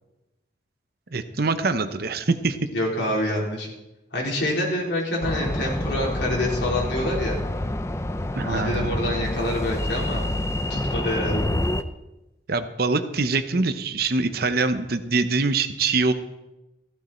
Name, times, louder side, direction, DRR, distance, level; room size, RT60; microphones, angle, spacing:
voice 1, 1.1-2.6 8.4-9.0 12.5-16.1, right 3 dB, 55° right, 10 dB, 0.8 m, -24 dB
voice 2, 2.7-3.7 4.1-7.4 8.4-10.2 10.7-11.5, left 1 dB, 65° left, -3 dB, 4.2 m, -26 dB
sound 1, 5.2-11.8, left 1 dB, 15° left, 0.5 m, -27 dB
15.0 x 12.5 x 4.4 m, 0.98 s
head